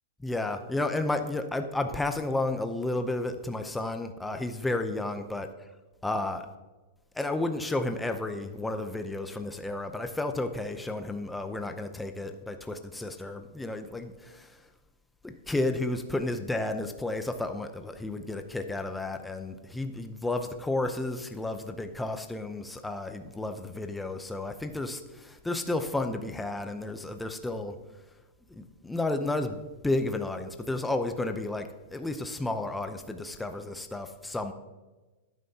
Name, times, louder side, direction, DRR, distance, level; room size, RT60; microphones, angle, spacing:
voice 1, 0.2-5.5 6.0-6.5 7.1-14.6 15.2-27.8 28.5-34.5, left 2 dB, 5° left, 7 dB, 0.6 m, -32 dB
12.0 x 9.4 x 2.8 m, 1.2 s
hypercardioid pair, 145°, 0 cm